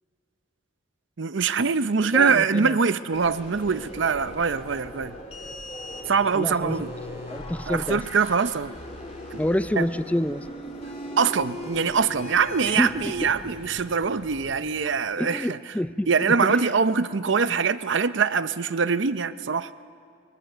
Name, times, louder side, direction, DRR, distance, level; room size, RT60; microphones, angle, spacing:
voice 1, 1.2-5.2 6.1-6.9 7.7-8.7 9.3-9.4 9.8-9.9 11.2-15.6 16.1-19.7, right 5 dB, 70° right, 14 dB, 0.6 m, -23 dB
voice 2, 2.1-2.7 6.3-6.8 7.3-8.0 9.4-10.5 12.6-13.1 15.2-16.7 17.5-17.6, left 1 dB, 10° left, 13 dB, 0.4 m, -28 dB
sound 1, 3.1-14.6, left 1 dB, 35° left, 3.3 m, -39 dB
23.0 x 22.0 x 6.7 m, 2.3 s
head